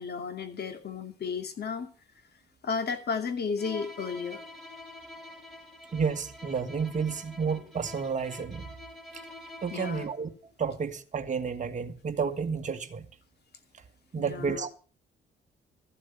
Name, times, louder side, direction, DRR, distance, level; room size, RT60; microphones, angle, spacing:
voice 1, 0.0-1.9 2.6-4.4 9.7-10.1 14.2-14.7, left 5 dB, 55° left, 2.7 m, -33 dB
Bowed string instrument, 3.6-10.2, left 1 dB, ahead, 4.4 m, -46 dB
voice 2, 5.9-8.7 9.1-9.2 9.6-10.3 10.6-13.1 14.1-14.7, right 6 dB, 40° right, 1.7 m, -31 dB
14.0 x 7.9 x 6.8 m
cardioid pair, 90°, 20 cm